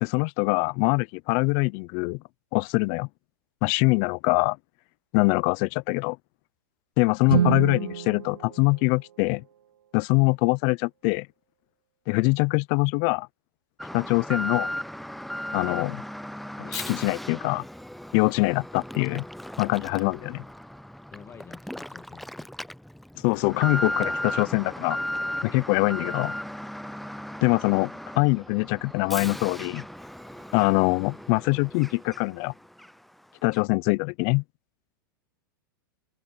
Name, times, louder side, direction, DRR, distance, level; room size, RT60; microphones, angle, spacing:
voice 1, 0.0-2.2 2.5-3.1 3.6-4.6 5.1-6.2 7.0-9.4 9.9-11.3 12.1-13.3 13.9-14.7 15.5-16.0 16.6-17.6 18.1-19.2 19.6-20.4 23.2-25.0 25.4-26.3 27.4-29.8 30.5-32.5 33.4-34.4, left 29 dB, 50° left, 0.6 m, -23 dB
Guitar, 7.3-9.9, right 9 dB, 90° right, 0.7 m, -29 dB
Alarm, 13.8-32.5 32.8-32.9 33.5-33.6, equal, ahead, 0.6 m, -36 dB
voice 2, 21.1-22.5, left 7 dB, 25° left, 1.9 m, -48 dB
sound 1, 25.0-32.2, right 10 dB, 30° right, 4.0 m, -60 dB
hypercardioid pair, 125°, 12 cm